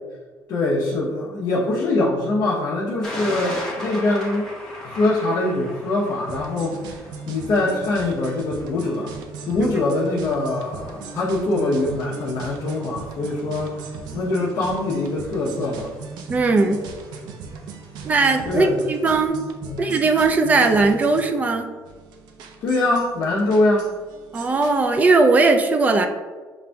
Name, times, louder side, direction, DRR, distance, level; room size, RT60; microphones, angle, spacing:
voice 1, 0.5-4.5 4.8-7.0 7.3-9.1 9.5-13.7 14.1-15.9 18.5-18.8 19.6-19.9 22.6-23.9, left 2 dB, 55° left, -7 dB, 0.8 m, -23 dB
Thunder, 3.0-19.3, left 1 dB, 5° left, 0.9 m, -40 dB
sound 1, 6.3-25.1, right 5 dB, 75° right, 0.5 m, -38 dB
voice 2, 16.3-16.8 18.0-19.4 19.8-21.7 24.3-26.1, right 3 dB, 20° right, 5 dB, 0.3 m, -18 dB
7.3 x 2.6 x 2.2 m, 1.4 s
cardioid pair, 170°, 7 cm